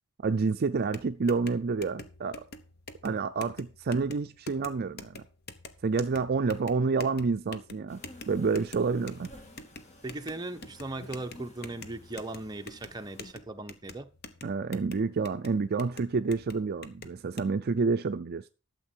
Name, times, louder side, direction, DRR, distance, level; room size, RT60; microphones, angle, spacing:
voice 1, 0.2-2.4 3.0-5.2 5.8-8.0 8.3-9.3 14.4-18.5, right 4 dB, 50° right, 0.4 m, -29 dB
sound 1, 0.8-17.5, left 3 dB, 50° left, 1.0 m, -47 dB
sound 2, 7.9-13.3, left 1 dB, 35° left, 2.0 m, -52 dB
voice 2, 10.0-14.1, right 2 dB, 20° right, 0.8 m, -38 dB
12.0 x 7.4 x 4.5 m
head